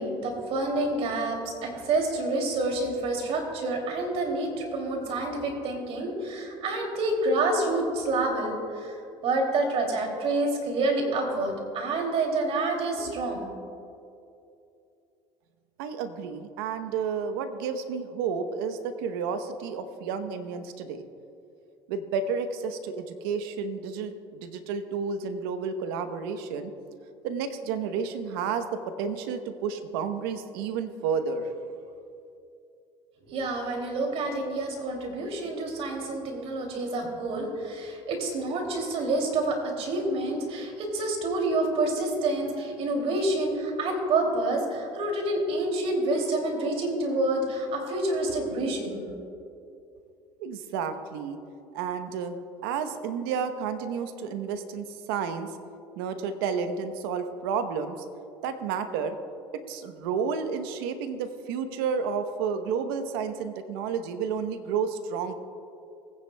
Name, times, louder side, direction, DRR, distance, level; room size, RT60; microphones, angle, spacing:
voice 1, 0.0-9.0 9.2-13.5 33.2-49.0, right 2 dB, 60° right, 2 dB, 2.7 m, -28 dB
voice 2, 15.8-21.0 21.9-26.7 27.2-31.5 50.4-51.4 51.7-52.4 52.6-55.6 56.0-58.0 58.4-59.2 59.5-65.3, right 6 dB, 85° right, 9 dB, 0.9 m, -31 dB
20.5 x 9.7 x 2.2 m, 2.6 s
supercardioid pair, 85°, 12 cm